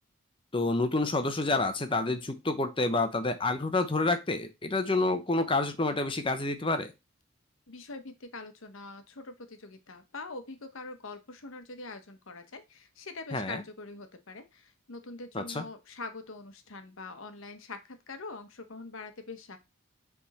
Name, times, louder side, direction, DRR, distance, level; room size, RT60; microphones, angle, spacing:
voice 1, 0.5-6.9 13.3-13.6 15.3-15.6, left 2 dB, 25° left, 8 dB, 0.8 m, -28 dB
voice 2, 7.7-19.6, left 3 dB, 65° left, 8 dB, 1.0 m, -44 dB
7.4 x 3.6 x 4.1 m, 0.24 s
head